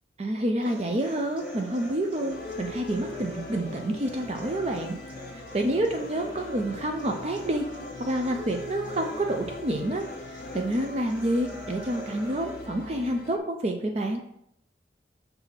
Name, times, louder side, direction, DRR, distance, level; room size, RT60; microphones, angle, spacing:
voice 1, 0.2-5.0 5.3-7.7 8.0-14.2, right 1 dB, 35° right, 4 dB, 0.5 m, -28 dB
sound 1, 0.6-12.6, left 1 dB, 5° right, 1.9 m, -41 dB
sound 2, 2.3-13.4, left 2 dB, 55° left, 0.5 m, -43 dB
5.8 x 3.4 x 5.8 m, 0.76 s
head